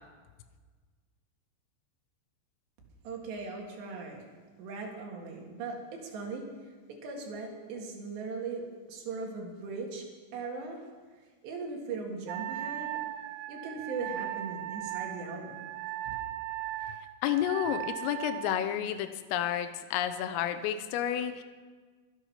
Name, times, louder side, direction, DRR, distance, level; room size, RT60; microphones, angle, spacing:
voice 1, 3.0-4.2 4.6-6.5 6.9-10.1 10.3-10.9 11.4-12.9 13.5-15.6 16.1-16.2, right 4 dB, 65° right, 1 dB, 3.7 m, -39 dB
Wind instrument woodwind instrument, 12.3-18.6, right 14 dB, 90° right, 3.3 m, -38 dB
voice 2, 17.2-21.4, left 11 dB, 85° left, 10 dB, 3.4 m, -31 dB
23.0 x 8.7 x 5.8 m, 1.5 s
omnidirectional pair, 5.9 m